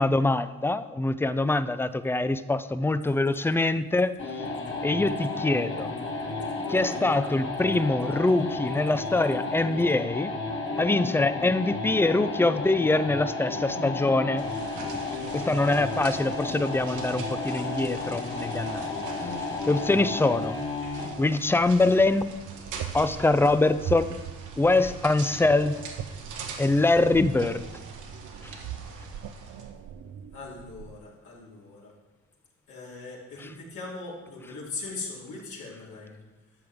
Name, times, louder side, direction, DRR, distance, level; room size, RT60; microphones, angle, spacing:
voice 1, 0.0-4.1 4.8-5.9 6.7-10.3 10.8-14.5 15.3-18.9 19.2-19.3 19.7-20.6 21.2-22.3 22.9-24.2 24.6-25.8 26.6-27.7 28.4-28.6, left 2 dB, 10° left, 13 dB, 0.4 m, -24 dB
sound 1, 4.2-21.2, left 3 dB, 40° left, 1.8 m, -32 dB
sound 2, 14.4-29.7, right 4 dB, 80° right, 1.5 m, -43 dB
sound 3, 21.7-31.0, right 10 dB, 65° right, 0.6 m, -41 dB
voice 2, 30.3-31.9 32.7-36.2, left 3 dB, 75° left, -5 dB, 3.2 m, -40 dB
12.5 x 7.7 x 3.6 m, 1.1 s
cardioid pair, 90°, 30 cm